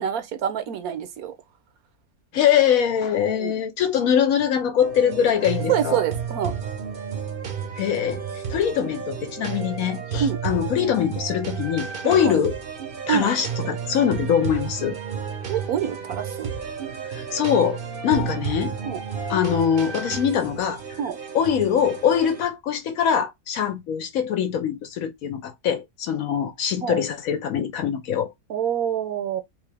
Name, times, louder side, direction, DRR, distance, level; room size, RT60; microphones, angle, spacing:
voice 1, 0.0-1.3 3.3-3.6 5.7-6.5 10.2-10.4 12.0-12.4 13.1-13.3 15.5-16.5 18.9-19.0 21.0-21.2 26.8-27.0 28.5-29.4, right 9 dB, 70° right, 1.1 m, -26 dB
voice 2, 2.3-6.0 7.8-8.2 8.5-12.5 13.1-15.0 17.1-18.8 19.3-21.0 21.3-28.3, left 8 dB, 70° left, 0.9 m, -23 dB
sound 1, 4.8-22.4, right 7 dB, 45° right, 0.7 m, -32 dB
3.6 x 2.8 x 3.3 m
omnidirectional pair, 1.7 m